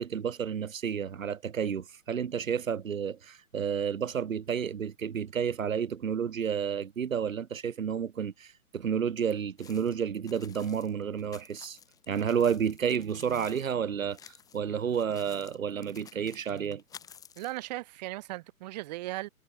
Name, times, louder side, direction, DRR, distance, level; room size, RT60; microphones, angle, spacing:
voice 1, 0.0-11.8 12.1-16.8, right 7 dB, 60° right, 1.5 m, -31 dB
sound 1, 9.6-13.7 14.0-14.6 14.9-17.6, left 8 dB, 10° left, 1.8 m, -53 dB
voice 2, 17.4-19.3, right 18 dB, 30° right, 2.8 m, -37 dB
figure-of-eight pair, 140°, 44 cm